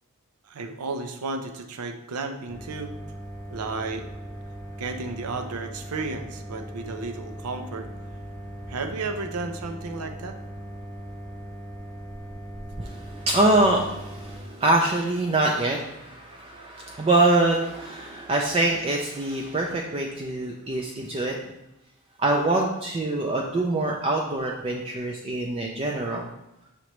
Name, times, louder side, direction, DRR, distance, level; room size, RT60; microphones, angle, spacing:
voice 1, 0.4-2.9 3.5-4.1 4.8-7.9 8.7-10.4, right 3 dB, 85° right, 6 dB, 0.5 m, -33 dB
sound 1, 2.5-14.4, right 1 dB, 10° left, 1.1 m, -39 dB
voice 2, 12.8-21.4 22.2-26.3, right 2 dB, 25° right, 0 dB, 0.4 m, -24 dB
5.8 x 3.0 x 3.0 m, 0.89 s
head